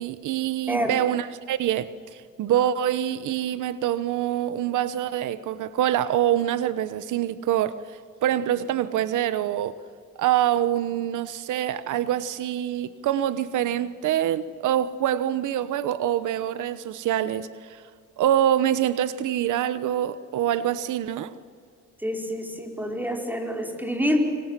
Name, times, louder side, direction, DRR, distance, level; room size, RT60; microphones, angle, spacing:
voice 1, 0.0-9.8 10.2-17.8 18.2-21.3, right 11 dB, 80° right, 14 dB, 1.1 m, -25 dB
voice 2, 0.7-1.0 22.0-24.3, equal, 5° right, 3 dB, 5.1 m, -27 dB
28.0 x 25.0 x 7.6 m, 2.1 s
cardioid pair, 90°, 30 cm